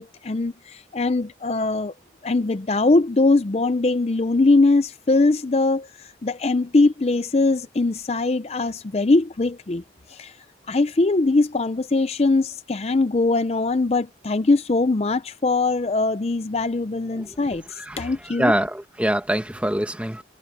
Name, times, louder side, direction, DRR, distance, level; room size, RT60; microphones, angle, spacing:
voice 1, 0.0-1.9 2.2-5.9 6.2-9.8 10.1-10.3 10.7-17.6 18.0-18.5, left 3 dB, 35° left, 0.5 m, -21 dB
voice 2, 18.4-20.2, right 1 dB, 5° right, 1.3 m, -24 dB
head